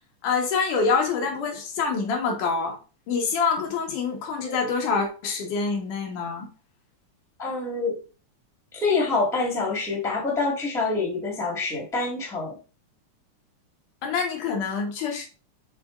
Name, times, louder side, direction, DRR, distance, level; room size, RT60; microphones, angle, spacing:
voice 1, 0.2-2.8 3.1-6.5 14.0-15.3, left 5 dB, 80° left, 2.9 m, -26 dB
voice 2, 7.4-8.0 8.7-12.6, left 3 dB, ahead, 1.3 m, -26 dB
6.1 x 4.2 x 3.8 m
omnidirectional pair, 3.6 m